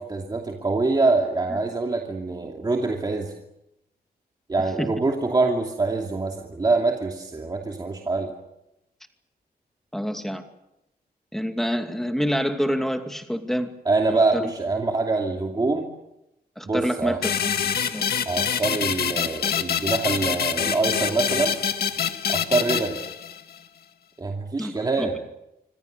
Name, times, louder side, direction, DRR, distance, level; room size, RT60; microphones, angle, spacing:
voice 1, 0.0-3.3 4.5-8.3 13.9-15.9 16.7-17.2 18.2-21.6 22.3-23.0 24.2-25.2, right 3 dB, 25° right, 1 dB, 2.7 m, -24 dB
voice 2, 9.9-10.4 11.3-13.7 14.1-14.5 16.6-17.5 17.9-18.1 24.6-25.2, equal, ahead, 5 dB, 2.5 m, -27 dB
sound 1, 17.2-23.6, left 8 dB, 75° left, 1.8 m, -26 dB
26.0 x 26.0 x 6.8 m, 0.88 s
wide cardioid pair, 155°, 16 cm